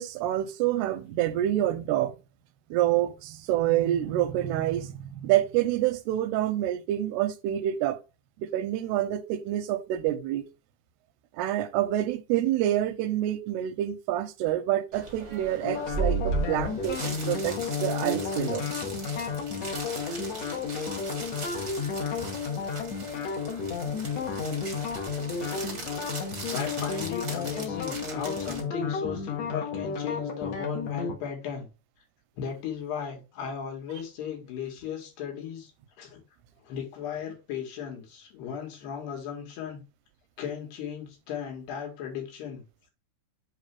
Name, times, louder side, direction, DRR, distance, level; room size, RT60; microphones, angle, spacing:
voice 1, 0.0-2.2 2.7-8.0 8.4-10.4 11.3-18.7, right 13 dB, 90° right, 2.8 m, -27 dB
sound 1, 14.9-28.6, right 3 dB, 50° right, 0.8 m, -37 dB
sound 2, 15.6-31.1, left 5 dB, 55° left, 2.0 m, -32 dB
voice 2, 26.5-31.7 32.4-35.7 36.0-36.2 36.6-39.8 40.4-42.6, left 8 dB, 80° left, 4.0 m, -36 dB
7.5 x 3.3 x 5.9 m
omnidirectional pair, 4.7 m